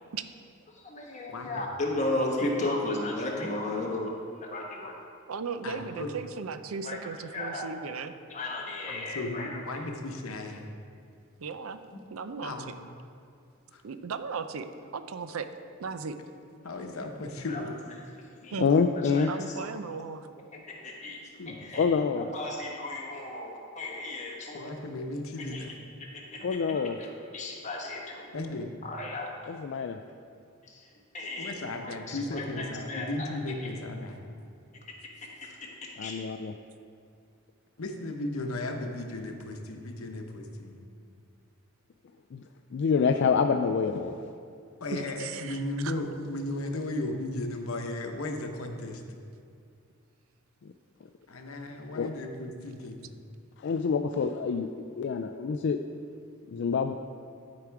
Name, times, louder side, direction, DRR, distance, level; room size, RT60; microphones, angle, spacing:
voice 1, 0.7-4.9 6.8-7.0 7.3-7.7 8.3-9.6 11.9-12.0 17.5-17.6 18.4-18.5 19.1-19.7 20.5-21.2 21.5-21.8 22.2-24.7 25.5-25.6 26.0-28.3 28.8-29.3 30.7-30.9 31.1-31.6 31.8-33.3 33.6-33.7 35.2-36.2, left 2 dB, 35° left, -1 dB, 1.3 m, -35 dB
voice 2, 1.3-1.7 5.6-6.1 8.9-10.7 12.4-12.7 13.7-13.8 16.6-17.8 21.4-21.6 24.5-25.8 28.3-28.7 31.4-34.2 37.8-40.8 44.8-49.0 51.3-53.1, left 2 dB, 90° left, 4 dB, 0.9 m, -35 dB
voice 3, 5.3-8.1 11.4-11.8 12.1-12.5 13.8-14.7 14.9-15.5 15.8-16.1 18.5-18.7 19.3-20.3 44.9-45.9, right 5 dB, 80° right, 10 dB, 0.5 m, -36 dB
voice 4, 18.6-19.3 21.8-22.3 26.4-27.0 29.5-30.0 36.0-36.5 42.3-42.4 42.7-44.2 52.0-52.1 53.6-55.8 56.5-56.9, left 5 dB, 60° left, 5 dB, 0.3 m, -26 dB
12.0 x 4.9 x 4.6 m, 2.4 s
head